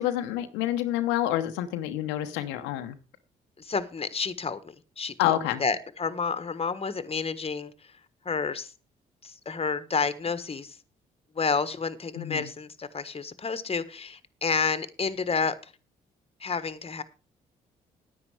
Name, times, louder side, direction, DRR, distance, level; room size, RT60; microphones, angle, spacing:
voice 1, 0.0-3.0 5.2-5.6 12.1-12.5, left 13 dB, 85° left, 0.9 m, -28 dB
voice 2, 3.6-7.9 8.2-8.7 9.2-10.8 11.3-15.7 16.4-17.0, left 5 dB, 30° left, 1.3 m, -30 dB
9.9 x 9.5 x 4.8 m
supercardioid pair, 55°, 18 cm